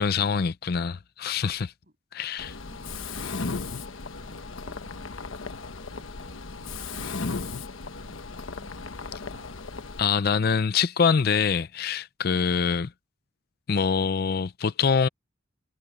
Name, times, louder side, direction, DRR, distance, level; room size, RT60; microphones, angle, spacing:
voice 1, 0.0-1.7 2.1-2.6 10.0-12.9 13.7-15.1, left 6 dB, 50° left, 0.5 m, -24 dB
Mechanisms, 2.4-10.0, left 4 dB, 80° left, 1.2 m, -36 dB
voice 2, 2.7-3.7 4.2-5.4 5.8-9.5, right 1 dB, 45° right, 7.2 m, -57 dB
head